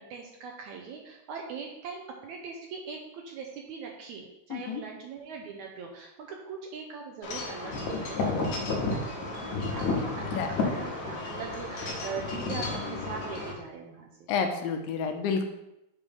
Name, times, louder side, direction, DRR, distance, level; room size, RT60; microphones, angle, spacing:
voice 1, 0.0-14.3, right 5 dB, 75° right, 1 dB, 1.8 m, -41 dB
voice 2, 4.5-4.8 10.3-10.6 14.3-15.4, left 5 dB, 80° left, 5 dB, 2.4 m, -30 dB
Wind chime / Wind, 7.2-13.5, left 3 dB, 65° left, 2.2 m, -32 dB
8.2 x 3.2 x 5.3 m, 0.88 s
omnidirectional pair, 4.0 m